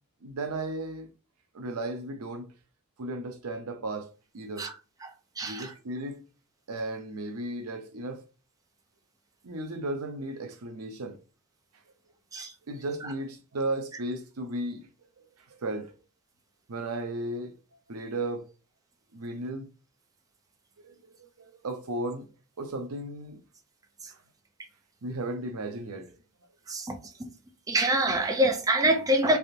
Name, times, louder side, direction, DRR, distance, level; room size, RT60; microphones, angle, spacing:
voice 1, 0.2-1.1 1.5-2.5 3.0-4.7 5.4-6.2 6.7-8.3 9.4-11.2 12.7-14.9 15.2-15.9 16.7-17.5 17.9-18.5 19.1-19.7 20.8-22.3 22.6-23.4 24.1-24.2 25.0-26.1, right 2 dB, 80° right, 0.7 m, -35 dB
voice 2, 5.4-5.7 12.3-12.5 26.7-27.3 27.7-29.4, right 1 dB, 15° right, 0.4 m, -25 dB
3.4 x 2.5 x 2.7 m
head